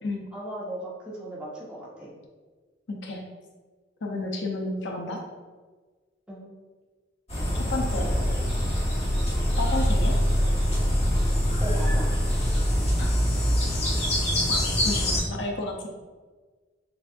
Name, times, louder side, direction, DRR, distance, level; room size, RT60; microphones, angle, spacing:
voice 1, 0.3-2.1 6.3-6.4 11.6-12.1, right 1 dB, 5° right, -7 dB, 1.2 m, -36 dB
voice 2, 2.9-3.2 4.0-5.2 7.6-8.1 9.6-10.2 13.0-13.1 14.5-15.9, left 2 dB, 65° left, 0 dB, 0.6 m, -32 dB
sound 1, 7.3-15.2, equal, 35° left, 1.2 m, -24 dB
6.7 x 2.5 x 2.6 m, 1.4 s
head